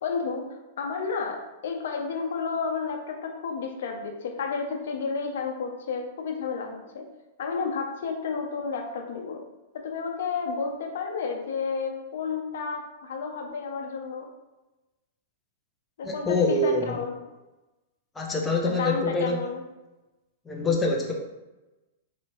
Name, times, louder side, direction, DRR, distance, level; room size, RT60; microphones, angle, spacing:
voice 1, 0.0-7.1 7.4-9.4 9.7-14.3 16.0-17.2 18.6-19.6, left 5 dB, 70° left, 3 dB, 0.6 m, -31 dB
voice 2, 16.0-17.0 18.2-19.4 20.5-21.1, left 2 dB, 10° left, 0 dB, 0.5 m, -25 dB
4.1 x 2.7 x 3.0 m, 1.0 s
hypercardioid pair, 145°, 0 cm